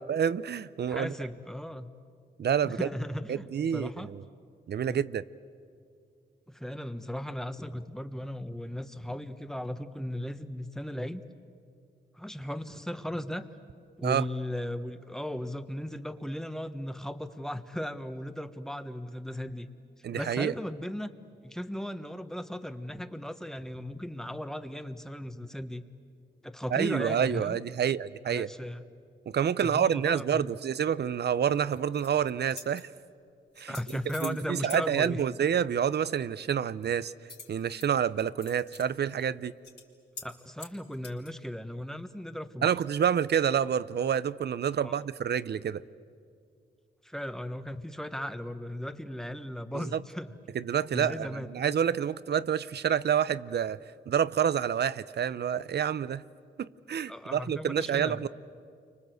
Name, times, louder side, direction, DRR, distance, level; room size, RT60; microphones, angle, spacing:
voice 1, 0.0-1.1 2.4-2.9 3.3-4.2 4.7-5.2 14.0-14.3 20.0-20.5 26.7-28.5 29.3-32.9 33.6-33.7 34.2-37.1 37.5-39.5 42.6-45.8 49.7-50.0 50.5-53.8 54.1-56.2 56.6-58.3, right 8 dB, 65° right, 17 dB, 0.7 m, -28 dB
voice 2, 0.8-1.9 2.6-4.1 4.8-5.0 6.5-11.2 12.1-13.5 14.0-19.7 20.1-21.1 21.4-25.8 26.4-27.6 28.3-28.9 29.6-30.5 33.7-35.2 40.2-42.7 44.8-45.1 47.0-50.3 50.9-51.5 57.1-58.3, left 1 dB, 5° left, 10 dB, 1.3 m, -37 dB
sound 1, 31.7-32.1 32.5-32.8 33.6-34.4 34.7-34.8 37.3-37.9 38.2-38.9 39.2-39.3 39.6-39.8 40.2-40.3 40.6-41.3, left 4 dB, 60° left, 4.1 m, -45 dB
30.0 x 25.0 x 7.9 m, 2.3 s
cardioid pair, 70°, 19 cm